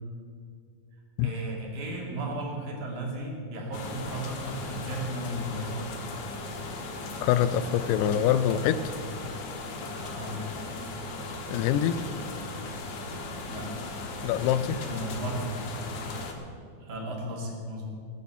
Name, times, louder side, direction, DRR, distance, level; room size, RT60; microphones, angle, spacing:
voice 1, 1.2-5.9 10.0-10.4 13.5-13.9 14.9-15.5 16.8-17.9, right 1 dB, 55° right, -2 dB, 3.6 m, -35 dB
sound 1, 3.7-16.3, left 2 dB, 55° left, 2.1 m, -37 dB
voice 2, 7.2-9.0 11.5-12.0 14.2-14.8, left 10 dB, 90° left, 14 dB, 2.7 m, -25 dB
17.5 x 9.4 x 7.1 m, 2.4 s
omnidirectional pair, 4.6 m